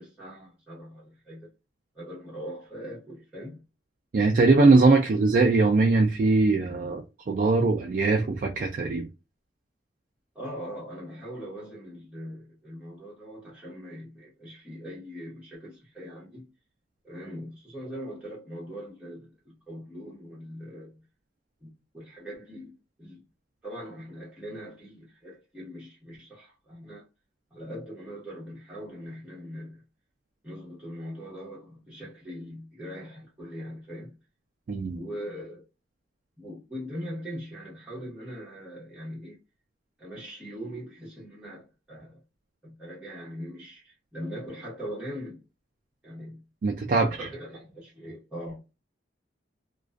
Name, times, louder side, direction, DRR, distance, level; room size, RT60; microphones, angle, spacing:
voice 1, 0.0-1.5 1.9-3.6 10.3-16.5 17.0-21.0 21.6-23.2 23.6-27.1 27.5-29.8 30.4-34.1 34.9-35.7 36.4-39.4 40.0-42.2 42.6-45.4 46.0-46.4 47.0-48.6, equal, 5° right, 1.0 m, -41 dB
voice 2, 4.1-9.1 34.7-35.0 46.6-47.3, right 3 dB, 45° right, 0.3 m, -21 dB
2.4 x 2.2 x 2.3 m
head